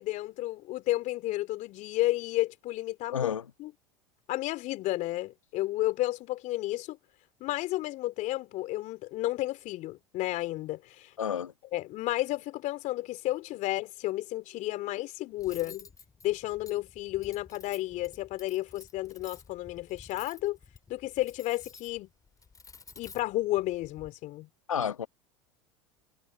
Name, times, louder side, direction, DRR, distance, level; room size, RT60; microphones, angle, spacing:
voice 1, 0.0-3.3 3.6-3.7 4.3-7.0 7.4-11.1 11.7-15.9 16.2-20.6 20.9-22.1 23.0-24.5, left 17 dB, 50° left, 3.6 m, -32 dB
voice 2, 3.1-3.5 11.2-11.5 24.7-25.1, left 8 dB, 90° left, 1.6 m, -30 dB
Cutlery silverware, 15.4-24.1, left 5 dB, 20° left, 5.1 m, -52 dB
hypercardioid pair, 85°, 16 cm